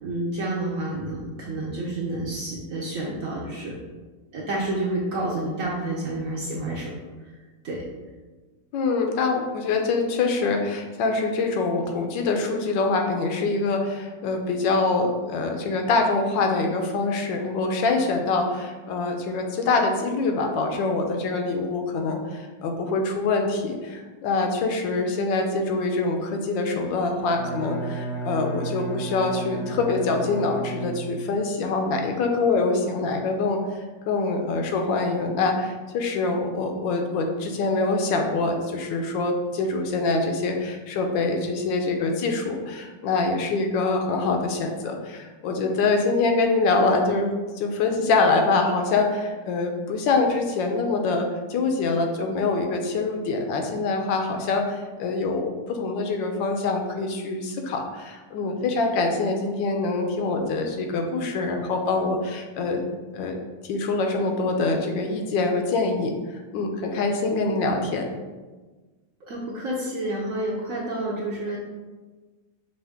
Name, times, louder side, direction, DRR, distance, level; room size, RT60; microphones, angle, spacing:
voice 1, 0.0-3.7 4.3-6.9 7.6-7.8 69.2-71.6, right 1 dB, 65° right, -4 dB, 0.8 m, -29 dB
voice 2, 8.7-33.6 34.1-47.3 47.6-62.8 63.1-63.3 63.6-68.0, left 3 dB, 80° left, 3 dB, 1.3 m, -25 dB
Bowed string instrument, 27.2-31.4, right 3 dB, 60° left, 0.9 m, -33 dB
5.5 x 2.5 x 3.4 m, 1.3 s
omnidirectional pair, 2.0 m